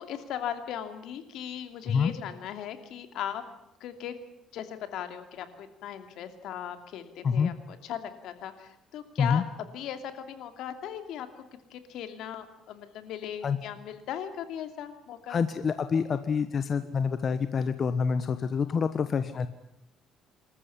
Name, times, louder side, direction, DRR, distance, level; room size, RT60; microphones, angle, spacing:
voice 1, 0.0-3.4 3.8-4.2 4.5-9.4 9.7-11.3 11.7-15.4, left 10 dB, 75° left, 8 dB, 2.7 m, -38 dB
voice 2, 15.3-19.5, left 6 dB, 40° left, 10 dB, 1.2 m, -27 dB
26.0 x 14.0 x 10.0 m, 0.79 s
cardioid pair, 120°, 0 cm